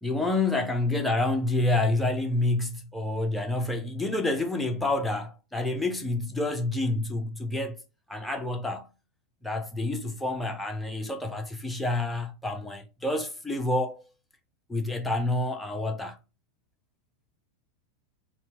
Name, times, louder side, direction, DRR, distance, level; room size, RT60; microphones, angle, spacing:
voice 1, 0.0-7.8 8.1-8.9 9.4-14.0 14.7-16.2, left 2 dB, 5° left, 0.6 m, -28 dB
4.2 x 2.2 x 3.0 m
figure-of-eight pair, 90°, 0 cm